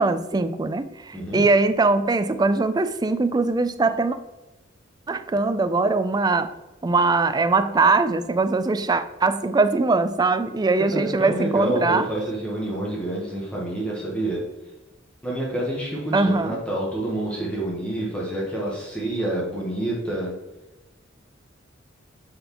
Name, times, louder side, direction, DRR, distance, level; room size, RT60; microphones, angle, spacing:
voice 1, 0.0-4.2 5.1-6.5 6.8-12.1 16.1-16.6, right 3 dB, 20° right, 11 dB, 0.3 m, -21 dB
voice 2, 1.1-1.4 10.9-14.4 15.2-20.3, right 1 dB, 5° left, -4 dB, 1.1 m, -28 dB
8.5 x 4.1 x 3.0 m, 1.0 s
head